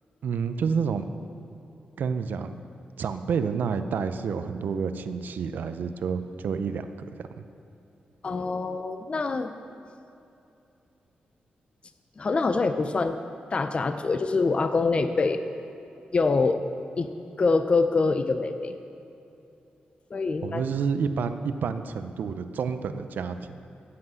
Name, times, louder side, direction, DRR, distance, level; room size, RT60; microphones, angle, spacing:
voice 1, 0.2-1.1 2.0-2.6 3.0-7.1 7.4-7.5 20.4-23.6, right 6 dB, 75° right, 10 dB, 0.5 m, -29 dB
voice 2, 8.2-9.5 12.2-13.2 13.5-15.4 16.1-16.6 17.0-18.7 20.1-20.6, left 3 dB, 35° left, 8 dB, 0.5 m, -25 dB
9.7 x 7.7 x 7.7 m, 2.7 s
cardioid pair, 100°, 3 cm